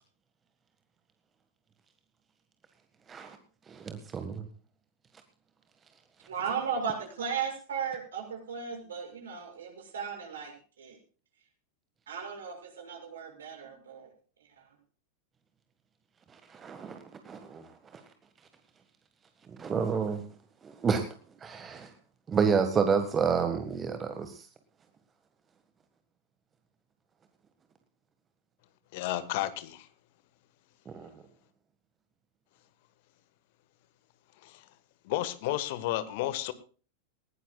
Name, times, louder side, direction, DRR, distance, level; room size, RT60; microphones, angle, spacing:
voice 1, 3.7-4.5 16.3-17.7 19.5-20.2 20.6-21.1 21.4-21.9 22.3-24.5 30.8-31.1, right 6 dB, 20° right, 8 dB, 1.6 m, -29 dB
voice 2, 6.3-10.9 12.1-14.1, right 6 dB, 65° right, 3 dB, 6.3 m, -36 dB
voice 3, 28.9-29.9 34.4-34.6 35.0-36.5, left 14 dB, 50° left, 14 dB, 1.4 m, -32 dB
20.0 x 17.0 x 2.3 m, 0.39 s
figure-of-eight pair, 90°, 0 cm